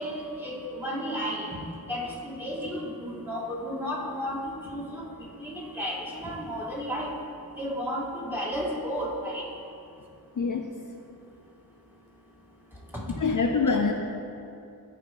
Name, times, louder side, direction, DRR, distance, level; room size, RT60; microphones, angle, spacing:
voice 1, 0.0-1.6 1.9-5.1 5.4-7.1 7.6-9.4, equal, 5° right, -5 dB, 2.4 m, -33 dB
voice 2, 10.4-10.7 13.2-13.9, left 4 dB, 55° left, 4 dB, 0.5 m, -24 dB
14.0 x 5.5 x 3.8 m, 2.6 s
wide cardioid pair, 50°, 38 cm